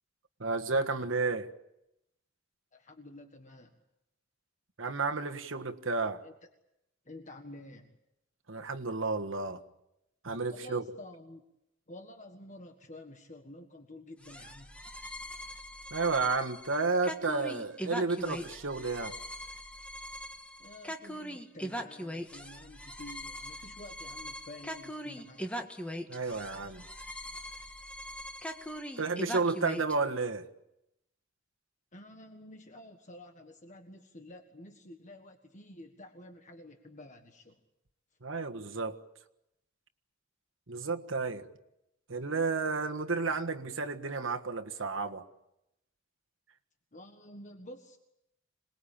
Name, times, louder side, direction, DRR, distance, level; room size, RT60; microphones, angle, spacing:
voice 1, 0.4-1.5 4.8-6.2 8.5-9.6 10.2-10.8 15.9-19.1 26.1-26.9 29.0-30.4 38.2-39.0 40.7-41.5 42.1-45.2, right 3 dB, 80° right, 5 dB, 1.6 m, -32 dB
voice 2, 2.7-3.8 6.2-6.3 7.0-8.0 10.5-11.4 11.9-14.7 20.6-25.6 31.9-37.6 46.9-48.0, left 1 dB, 40° left, 5 dB, 1.6 m, -50 dB
sound 1, 14.2-29.9, equal, 5° left, 1.6 m, -41 dB
26.5 x 20.5 x 8.8 m, 0.86 s
head